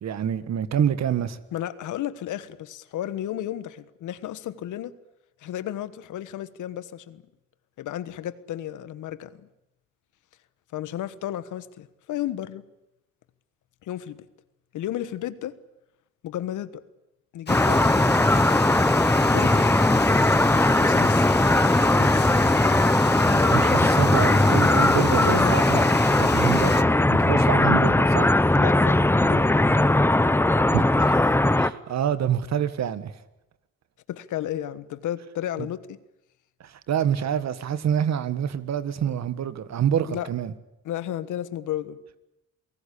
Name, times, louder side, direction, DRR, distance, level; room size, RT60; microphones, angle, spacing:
voice 1, 0.0-1.4 23.5-25.8 26.1-28.3 30.7-31.3 31.6-33.1 35.6-35.7 36.6-40.5, right 9 dB, 60° right, 1.7 m, -26 dB
voice 2, 1.5-4.9 5.4-7.2 7.8-9.5 10.7-12.6 13.8-14.2 14.7-15.6 16.2-16.8 17.3-18.2 19.3-19.7 20.7-21.3 21.9-22.3 23.2-23.8 24.8-25.6 28.5-29.6 34.1-36.0 40.1-40.3 40.8-42.0, left 12 dB, 80° left, 1.4 m, -33 dB
Water, 17.5-26.8, left 6 dB, 35° left, 1.2 m, -34 dB
sound 1, 17.5-31.7, left 1 dB, 10° left, 0.9 m, -19 dB
28.5 x 18.0 x 8.6 m
cardioid pair, 90°, 30 cm